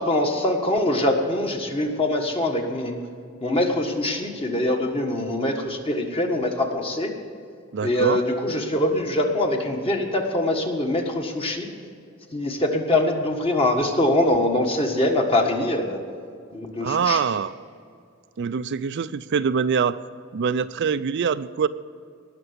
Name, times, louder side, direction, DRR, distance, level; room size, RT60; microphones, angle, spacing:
voice 1, 0.0-3.0 3.4-7.1 7.8-11.7 12.3-16.0 16.5-17.2, left 1 dB, 25° left, 3 dB, 1.5 m, -23 dB
voice 2, 7.7-8.2 16.8-17.5 18.4-20.0 20.3-21.7, right 6 dB, 55° right, 13 dB, 0.4 m, -24 dB
18.5 x 6.8 x 8.0 m, 2.3 s
head